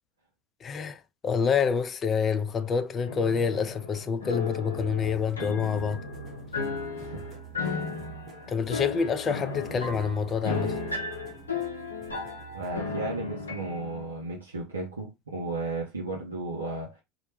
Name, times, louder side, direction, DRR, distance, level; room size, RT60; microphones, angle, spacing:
voice 1, 0.6-6.0 8.5-10.8, left 6 dB, 35° left, 0.3 m, -27 dB
sound 1, 3.1-14.1, left 4 dB, 90° left, 0.5 m, -35 dB
sound 2, 4.8-12.8, right 11 dB, 35° right, 0.5 m, -47 dB
voice 2, 6.9-7.3 7.6-7.8 12.5-17.0, right 2 dB, 90° right, 0.5 m, -34 dB
2.1 x 2.0 x 2.9 m
hypercardioid pair, 75°, 0 cm